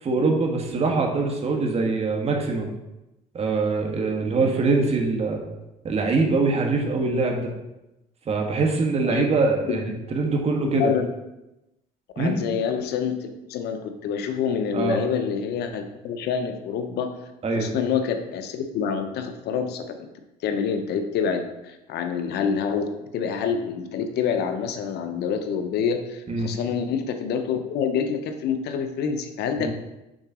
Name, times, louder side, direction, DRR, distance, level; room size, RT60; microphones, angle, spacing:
voice 1, 0.0-2.7 3.3-5.5 5.8-7.5 8.2-10.9 12.2-12.4 14.7-15.0 17.4-17.7 26.3-26.5 29.6-29.7, right 3 dB, 35° right, 1 dB, 1.5 m, -23 dB
voice 2, 10.7-11.1 12.2-17.1 17.5-20.0 20.4-22.9 23.1-29.7, left 7 dB, 75° left, 7 dB, 0.9 m, -27 dB
6.4 x 4.0 x 6.1 m, 0.95 s
cardioid pair, 110°, 17 cm